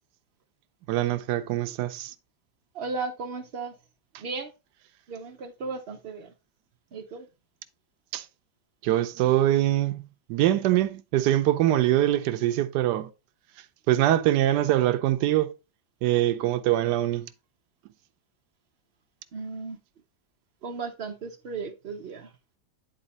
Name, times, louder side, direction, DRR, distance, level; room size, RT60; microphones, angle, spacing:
voice 1, 0.9-2.1 8.1-8.2 8.8-13.1 13.9-15.5 16.0-17.3, right 13 dB, 80° right, 1.2 m, -23 dB
voice 2, 2.7-3.7 4.2-4.5 5.1-6.3 6.9-7.3 19.3-19.8 20.6-22.3, right 4 dB, 60° right, 0.6 m, -35 dB
9.0 x 4.1 x 3.9 m
omnidirectional pair, 1.9 m